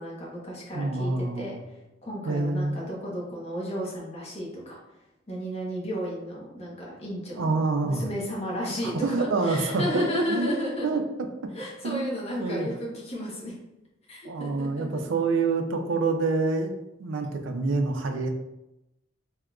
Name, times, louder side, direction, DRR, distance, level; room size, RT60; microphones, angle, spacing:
voice 1, 0.0-1.5 2.0-4.8 5.3-11.0 11.5-13.5 14.1-15.0, equal, 35° left, -4 dB, 1.0 m, -33 dB
voice 2, 0.7-1.6 2.3-2.9 7.4-8.1 8.8-10.5 10.8-11.0 11.8-12.1 12.4-12.7 14.2-16.7 17.0-18.3, right 3 dB, 85° right, 5 dB, 0.4 m, -27 dB
3.6 x 2.7 x 2.3 m, 0.93 s
head